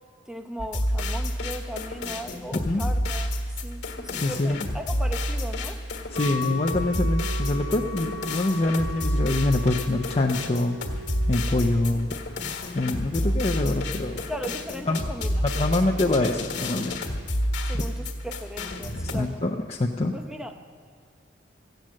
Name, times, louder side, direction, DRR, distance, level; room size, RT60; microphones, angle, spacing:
voice 1, 0.3-5.8 11.5-11.7 13.1-13.8 14.3-15.8 17.6-19.4 20.1-20.5, equal, 5° right, 5 dB, 0.7 m, -38 dB
sound 1, 0.6-19.2, left 1 dB, 60° left, 1.5 m, -29 dB
voice 2, 4.1-4.6 6.1-12.1 12.7-14.2 14.9-15.0 15.4-17.1 17.7-17.8 19.0-20.1, left 2 dB, 30° left, 2 dB, 0.5 m, -25 dB
Wind instrument woodwind instrument, 6.1-12.0, left 1 dB, 85° right, 1.0 m, -37 dB
14.5 x 9.1 x 7.5 m, 2.2 s
head